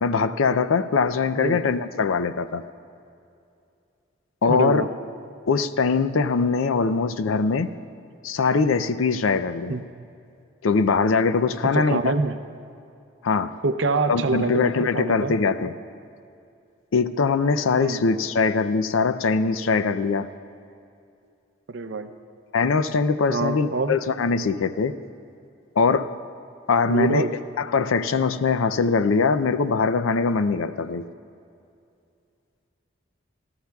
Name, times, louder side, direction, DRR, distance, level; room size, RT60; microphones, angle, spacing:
voice 1, 0.0-2.6 4.4-4.8 5.5-7.7 8.2-9.7 10.6-12.1 13.2-13.5 14.1-15.7 16.9-20.3 22.5-24.9 25.8-26.1 26.7-27.2 27.6-31.1, left 4 dB, 90° left, 13 dB, 0.5 m, -22 dB
voice 2, 4.5-4.9 9.7-9.9 11.6-12.4 13.6-15.3 17.8-18.0 21.7-22.1 23.3-23.9 26.9-27.4, right 3 dB, 70° right, 9 dB, 0.6 m, -25 dB
27.5 x 13.0 x 2.3 m, 2.5 s
head